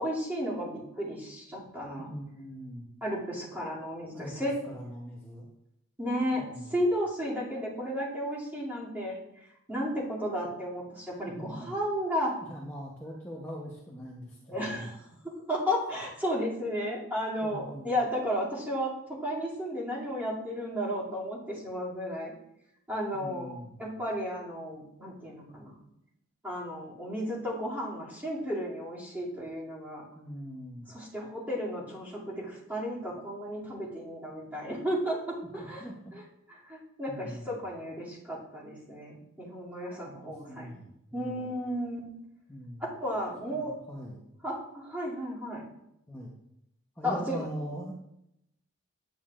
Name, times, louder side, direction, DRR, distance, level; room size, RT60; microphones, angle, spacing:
voice 1, 0.0-2.1 3.0-4.5 6.0-9.2 9.7-12.3 14.5-15.0 15.2-18.9 19.2-22.3 22.9-25.8 26.4-30.0 30.9-35.9 36.7-40.7 41.1-42.0 42.8-43.7 44.4-45.6 47.0-47.5, equal, 10° right, -8 dB, 2.5 m, -33 dB
voice 2, 2.0-2.9 4.1-5.5 6.3-6.8 11.2-11.7 12.5-14.9 17.4-18.0 23.1-23.9 30.1-30.9 35.6-36.1 37.1-37.6 40.2-41.6 42.5-42.9 43.5-44.3 46.1-46.3 47.0-47.9, equal, 10° left, -3 dB, 0.8 m, -42 dB
9.4 x 9.2 x 2.5 m, 0.81 s
head